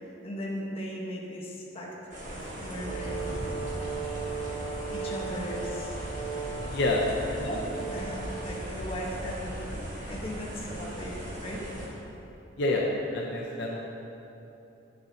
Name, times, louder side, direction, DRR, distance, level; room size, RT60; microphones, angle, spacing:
voice 1, 0.2-1.9 2.3-3.4 4.9-6.0 7.4-7.6 7.9-11.7, equal, 30° left, -4 dB, 1.1 m, -37 dB
sound 1, 2.1-11.9, right 1 dB, 40° right, 1.3 m, -38 dB
Brass instrument, 2.7-8.7, right 5 dB, 80° right, 1.4 m, -37 dB
voice 2, 6.7-7.0 12.6-12.8 13.1-13.8, left 2 dB, 65° left, -2 dB, 0.7 m, -27 dB
9.5 x 6.6 x 2.8 m, 3.0 s
head